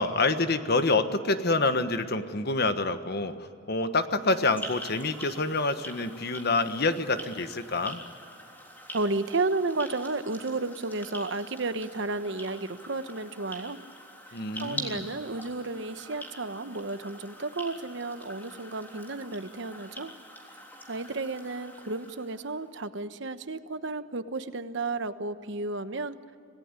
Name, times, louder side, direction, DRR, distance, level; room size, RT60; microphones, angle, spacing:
voice 1, 0.0-3.3 3.7-8.0 14.3-15.1, left 3 dB, 55° left, 9 dB, 1.3 m, -27 dB
sound 1, 4.2-22.7, equal, 10° left, 3.4 m, -45 dB
voice 2, 8.9-13.8 14.6-20.1 20.9-26.2, right 3 dB, 65° right, 11 dB, 1.1 m, -32 dB
26.5 x 18.0 x 9.7 m, 2.5 s
head